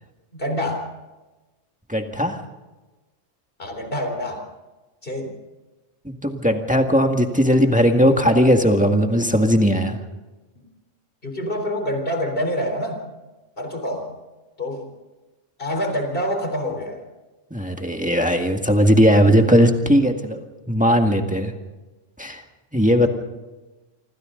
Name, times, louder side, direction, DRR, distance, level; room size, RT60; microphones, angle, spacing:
voice 1, 0.3-0.9 3.6-4.5 5.0-5.3 11.2-13.0 13.6-14.2 14.6-14.9 15.6-17.0, equal, 45° left, 5 dB, 4.0 m, -26 dB
voice 2, 1.9-2.4 6.1-10.0 17.5-20.4 20.7-21.5 22.2-22.4 22.7-23.1, equal, 5° right, 3 dB, 1.8 m, -18 dB
27.0 x 25.5 x 3.9 m, 1.1 s
omnidirectional pair, 1.3 m